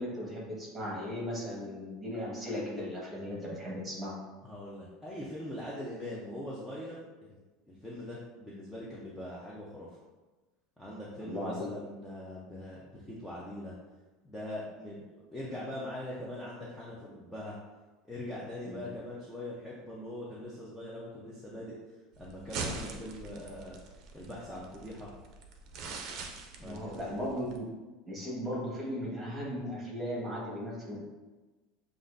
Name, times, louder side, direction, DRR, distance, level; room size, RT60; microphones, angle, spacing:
voice 1, 0.0-4.1 11.2-11.7 18.6-18.9 26.6-27.6 28.1-31.0, equal, 10° right, -4 dB, 1.4 m, -37 dB
voice 2, 4.4-7.4 7.7-9.9 10.8-13.7 14.2-17.6 18.1-21.7 22.2-23.8 24.1-25.1 26.6-27.0, left 1 dB, 5° left, -7 dB, 0.7 m, -42 dB
sound 1, 22.1-27.6, right 3 dB, 45° right, 0.6 m, -42 dB
7.1 x 2.5 x 2.6 m, 1.2 s
supercardioid pair, 150°, 0 cm